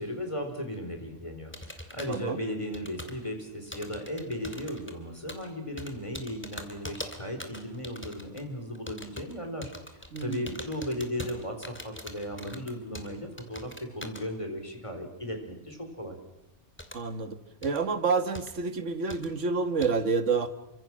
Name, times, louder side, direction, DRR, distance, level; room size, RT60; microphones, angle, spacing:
voice 1, 0.0-16.2, equal, 25° left, 4 dB, 4.6 m, -36 dB
sound 1, 1.5-2.3 2.7-3.3 3.7-4.9 5.3-5.5 5.8-8.4 8.7-9.3 9.6-13.1 13.4-14.2 16.8-17.0 17.6-17.8 18.3-18.5 19.1-19.3 19.8-19.9, equal, 10° left, 2.6 m, -42 dB
voice 2, 2.1-2.4 10.1-10.4 16.9-20.5, right 4 dB, 75° right, 9 dB, 1.9 m, -28 dB
28.5 x 25.0 x 6.3 m, 0.90 s
omnidirectional pair, 1.3 m